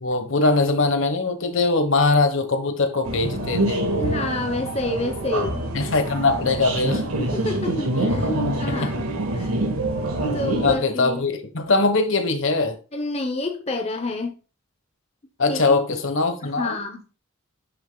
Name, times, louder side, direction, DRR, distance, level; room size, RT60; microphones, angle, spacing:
voice 1, 0.0-4.2 5.7-7.0 8.7-8.9 10.6-12.8 15.4-16.8, left 3 dB, 60° left, 1.2 m, -21 dB
sound 1, 3.1-10.8, right 1 dB, 85° right, 1.7 m, -25 dB
voice 2, 4.0-5.7 7.3-9.0 9.3-9.6 10.3-11.2 12.9-14.4 15.5-16.0 16.4-17.0, left 2 dB, 30° left, 0.8 m, -29 dB
10.0 x 6.3 x 2.3 m
head